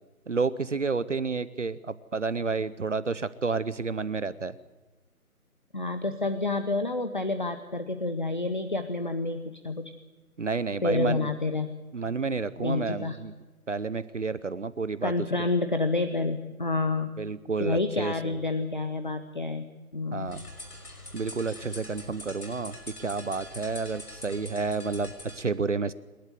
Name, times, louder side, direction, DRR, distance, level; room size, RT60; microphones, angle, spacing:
voice 1, 0.3-4.5 10.4-11.3 11.9-13.3 13.7-15.1 17.2-18.4 20.1-20.4 21.1-25.9, right 4 dB, 55° right, 16 dB, 0.8 m, -30 dB
voice 2, 5.7-9.9 10.8-11.7 12.6-13.2 15.0-17.1 17.6-19.7 19.9-20.3, left 3 dB, 35° left, 9 dB, 0.8 m, -29 dB
sound 1, 20.2-25.4, left 1 dB, 85° left, 5.9 m, -44 dB
27.0 x 12.0 x 9.5 m, 1.2 s
figure-of-eight pair, 165°, 44 cm